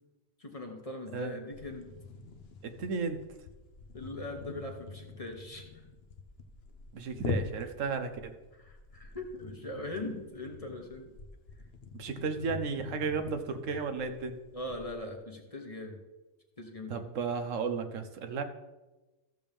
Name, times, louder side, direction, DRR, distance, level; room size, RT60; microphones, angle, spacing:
voice 1, 0.4-1.9 3.9-5.7 8.5-11.1 14.5-16.0 16.6-17.1, left 1 dB, 30° left, 3 dB, 1.1 m, -41 dB
sound 1, 1.5-15.0, left 4 dB, 55° left, 1.0 m, -44 dB
voice 2, 2.6-3.2 6.9-8.3 12.0-14.4 16.9-18.4, right 5 dB, 80° right, 8 dB, 1.2 m, -34 dB
14.5 x 6.9 x 3.5 m, 1.1 s
omnidirectional pair, 1.3 m